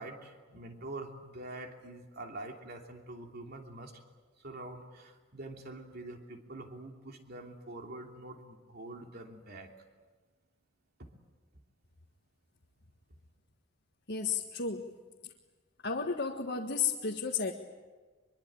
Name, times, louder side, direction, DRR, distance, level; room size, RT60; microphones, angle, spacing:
voice 1, 0.0-4.0 4.4-9.7 11.0-11.1, right 2 dB, 50° right, 2 dB, 3.1 m, -45 dB
voice 2, 14.1-14.8 15.8-17.5, left 5 dB, 55° left, 0 dB, 1.6 m, -32 dB
24.0 x 23.0 x 8.8 m, 1.3 s
head